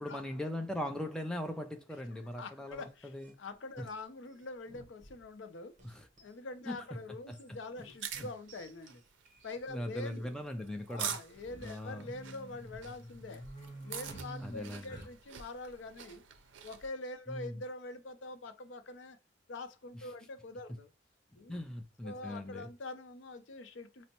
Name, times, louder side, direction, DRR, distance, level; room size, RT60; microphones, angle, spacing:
voice 1, 0.0-3.4 3.8-3.9 5.8-6.1 6.7-6.8 7.3-7.4 7.8-8.3 9.7-11.2 11.6-12.1 14.4-15.0 17.3-17.6 21.5-22.7, left 1 dB, 5° left, 0.4 m, -40 dB
voice 2, 2.3-5.7 6.2-9.0 9.4-10.4 10.9-13.4 13.8-16.2 16.6-19.2 19.5-20.9 21.4-21.6 22.0-24.1, left 2 dB, 80° left, 0.5 m, -45 dB
sound 1, 2.7-5.4 5.8-6.4 6.9-9.7, right 1 dB, 40° right, 0.7 m, -61 dB
sound 2, 2.9-3.0 4.4-4.5 5.9-6.0 6.2-6.3 8.2-8.3 8.6-8.7 9.4-9.8 11.2-15.4, right 1 dB, 25° left, 1.1 m, -48 dB
sound 3, 7.8-16.9, right 8 dB, 85° right, 0.4 m, -45 dB
5.2 x 2.0 x 2.8 m
head